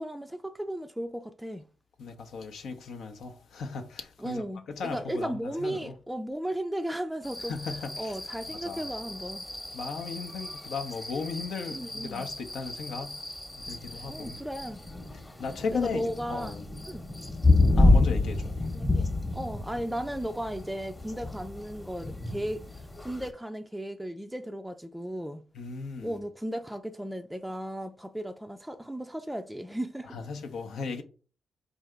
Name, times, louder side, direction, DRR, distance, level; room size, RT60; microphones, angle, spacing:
voice 1, 0.0-1.7 4.2-7.6 8.0-9.5 11.7-12.3 14.0-14.9 15.7-16.6 16.9-17.1 18.7-25.4 26.0-30.2, right 1 dB, 5° right, 0.3 m, -35 dB
voice 2, 2.0-5.9 7.5-8.1 8.5-8.9 9.7-13.3 13.6-14.4 15.4-16.7 17.8-18.6 25.5-26.2 30.1-31.0, left 4 dB, 75° left, 0.6 m, -36 dB
sound 1, 7.2-23.3, left 2 dB, 20° left, 0.9 m, -29 dB
3.7 x 2.7 x 3.2 m
supercardioid pair, 50°, 0 cm